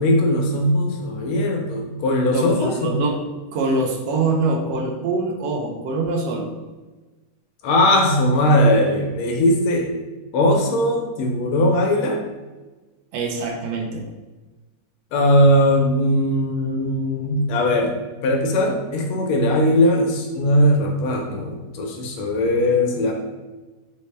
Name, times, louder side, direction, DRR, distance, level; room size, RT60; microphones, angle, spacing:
voice 1, 0.0-3.0 7.6-9.9 10.3-12.2 15.1-23.1, left 1 dB, 85° left, 2 dB, 1.5 m, -19 dB
voice 2, 2.3-3.2 3.5-6.5 13.1-14.1, right 3 dB, 75° right, 2 dB, 0.9 m, -24 dB
4.0 x 2.1 x 3.2 m, 1.2 s
omnidirectional pair, 2.2 m